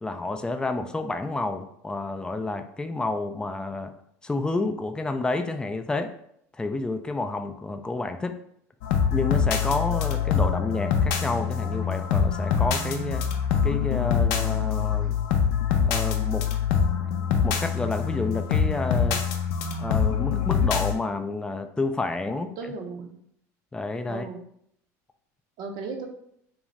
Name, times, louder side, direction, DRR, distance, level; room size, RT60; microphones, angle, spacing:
voice 1, 0.0-3.9 4.2-6.1 6.5-8.4 9.1-13.3 13.6-15.2 15.8-16.5 17.4-19.2 19.8-22.5 23.7-24.2, left 2 dB, 10° left, 7 dB, 0.3 m, -29 dB
sound 1, 8.8-20.9, left 7 dB, 70° left, 0.5 m, -24 dB
voice 2, 22.3-23.2 24.1-24.4 25.6-26.1, right 4 dB, 55° right, 4 dB, 0.5 m, -36 dB
2.5 x 2.4 x 3.1 m, 0.70 s
hypercardioid pair, 85°, 9 cm